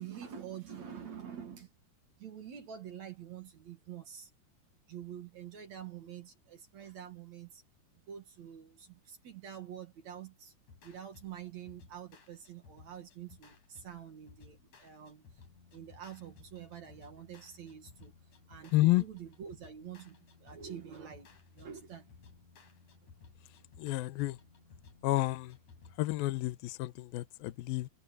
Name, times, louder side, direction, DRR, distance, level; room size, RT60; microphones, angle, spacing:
voice 1, 0.0-1.7 2.2-4.3 4.9-7.6 8.1-10.5 10.8-15.3 15.7-18.1 18.5-22.1, right 9 dB, 55° right, 2.3 m, -47 dB
sound 1, 10.7-26.0, left 5 dB, 45° left, 5.5 m, -58 dB
voice 2, 18.7-19.0 23.8-24.4 25.0-25.6 26.0-27.9, left 18 dB, 75° left, 2.3 m, -30 dB
omnidirectional pair, 5.0 m